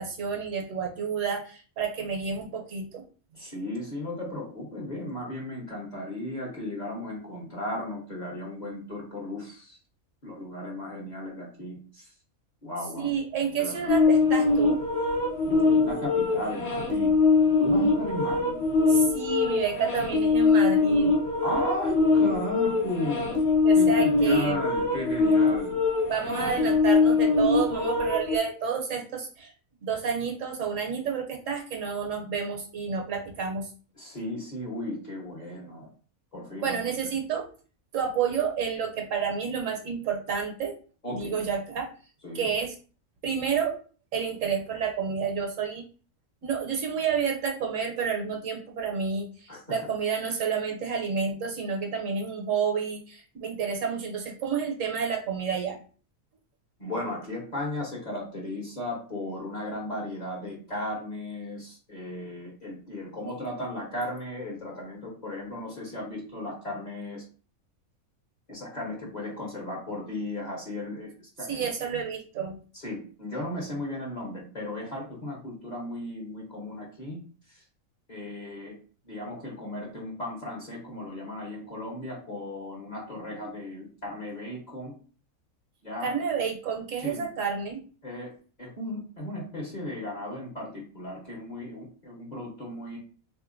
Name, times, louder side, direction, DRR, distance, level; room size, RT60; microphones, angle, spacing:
voice 1, 0.0-3.0 13.0-14.8 18.9-21.1 23.6-24.6 26.1-29.5 29.8-33.7 36.6-37.5 37.9-40.7 41.1-41.9 42.3-42.7 43.2-43.7 44.1-45.8 46.4-55.8 71.5-72.5 86.0-87.8, right 6 dB, 70° right, 2 dB, 1.0 m, -30 dB
voice 2, 3.3-9.8 10.2-12.1 12.6-13.1 13.6-14.0 15.4-17.1 17.6-18.6 21.4-23.4 23.7-25.8 26.2-26.8 34.0-35.9 36.3-36.9 41.0-41.4 42.2-42.5 49.5-49.9 56.8-67.2 68.5-71.1 71.4-71.6 72.7-77.2 77.5-77.6 78.1-78.7 79.0-84.9 85.8-86.1 87.0-87.3 88.0-88.3 88.6-93.0, left 1 dB, 35° left, -2 dB, 0.9 m, -35 dB
sound 1, 13.9-28.4, left 4 dB, 55° left, 1.2 m, -23 dB
3.7 x 2.7 x 2.5 m, 0.39 s
omnidirectional pair, 1.5 m